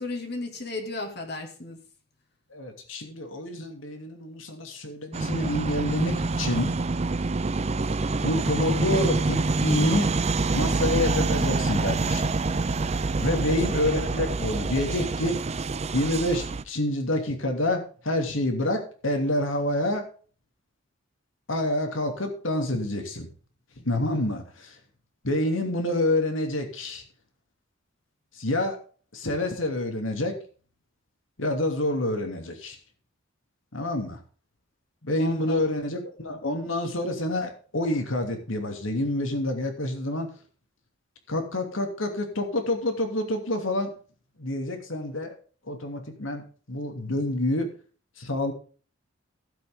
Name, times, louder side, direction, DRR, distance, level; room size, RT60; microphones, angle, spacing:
voice 1, 0.0-1.8 13.3-13.6 35.0-35.7, left 2 dB, 55° left, 3 dB, 2.4 m, -35 dB
voice 2, 2.5-6.7 8.2-10.1 10.5-12.3 13.2-15.4 15.9-20.0 21.5-23.3 23.8-24.7 25.2-27.0 28.4-28.8 29.1-30.3 31.4-32.8 33.7-34.2 35.0-40.3 41.3-43.9 44.4-45.3 45.7-47.7 48.2-48.5, left 1 dB, 85° left, 4 dB, 2.8 m, -27 dB
sound 1, 5.1-16.6, right 3 dB, 35° right, 0.5 m, -26 dB
15.5 x 8.0 x 3.7 m, 0.40 s
head